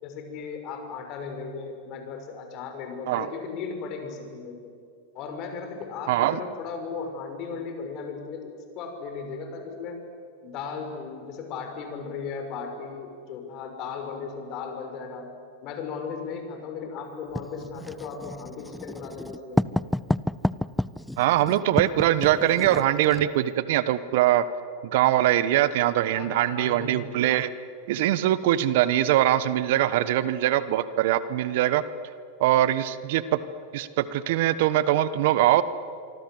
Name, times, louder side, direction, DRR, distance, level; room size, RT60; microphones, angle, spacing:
voice 1, 0.0-4.7 5.1-10.0 10.4-15.3 15.6-19.6 26.1-27.0, left 5 dB, 45° left, 5 dB, 5.8 m, -36 dB
voice 2, 6.1-6.4 21.2-24.4 24.9-27.5 27.9-31.8 32.4-33.4 33.7-35.6, right 13 dB, 65° right, 15 dB, 1.2 m, -22 dB
Writing, 17.4-23.3, left 1 dB, 5° left, 0.6 m, -29 dB
25.0 x 25.0 x 7.9 m, 2.3 s
hypercardioid pair, 105°, 0 cm